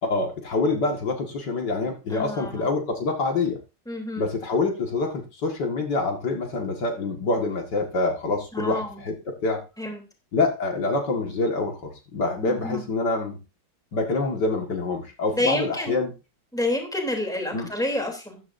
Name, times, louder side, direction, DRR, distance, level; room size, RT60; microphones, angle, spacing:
voice 1, 0.0-3.6 4.2-9.6 10.3-13.4 13.9-16.1 17.5-17.7, left 3 dB, 70° left, 2 dB, 2.5 m, -26 dB
voice 2, 2.1-2.8 3.9-4.3 8.5-9.0 9.8-10.0 12.4-12.8 15.3-15.9 16.5-18.4, left 1 dB, ahead, 3 dB, 3.1 m, -28 dB
14.5 x 11.0 x 2.7 m, 0.29 s
omnidirectional pair, 2.0 m